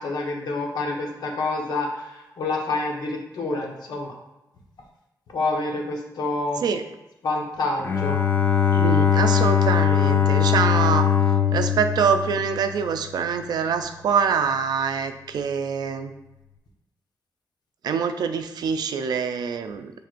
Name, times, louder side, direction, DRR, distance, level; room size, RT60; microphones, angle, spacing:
voice 1, 0.0-2.1 2.4-4.1 5.3-6.6 7.2-8.2, left 2 dB, 90° left, 0 dB, 0.9 m, -27 dB
voice 2, 6.6-6.9 8.7-11.1 11.5-16.1 17.8-19.9, right 6 dB, 80° right, 8 dB, 0.4 m, -25 dB
Bowed string instrument, 7.8-13.1, left 8 dB, 30° left, 0.3 m, -21 dB
5.9 x 3.3 x 2.5 m, 0.96 s
wide cardioid pair, 175°, 7 cm